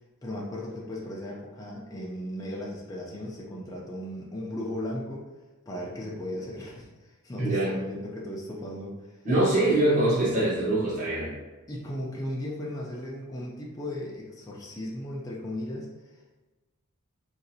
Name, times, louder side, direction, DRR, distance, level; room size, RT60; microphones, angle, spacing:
voice 1, 0.2-5.3 5.7-9.2 10.1-10.2 11.7-16.2, left 1 dB, 15° left, -4 dB, 0.4 m, -36 dB
voice 2, 7.4-7.7 9.2-11.3, right 1 dB, 35° right, -9 dB, 1.0 m, -23 dB
3.8 x 2.5 x 2.7 m, 1.2 s
head